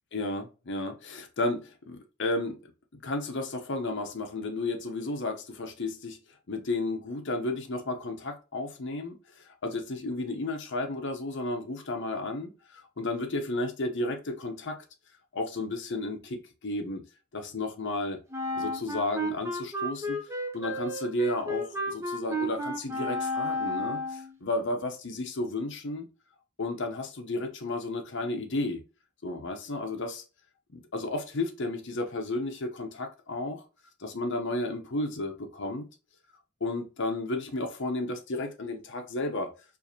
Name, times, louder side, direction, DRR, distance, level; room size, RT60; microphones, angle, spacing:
voice 1, 0.1-2.6 2.9-6.2 6.5-9.2 9.6-14.8 15.3-17.0 17.3-18.2 18.5-26.1 26.6-28.8 29.2-30.2 30.7-33.6 34.0-35.9 36.6-39.5, left 2 dB, 60° left, 0.7 m, -33 dB
Wind instrument woodwind instrument, 18.3-24.3, left 1 dB, 15° right, 0.5 m, -32 dB
4.6 x 2.5 x 2.7 m
head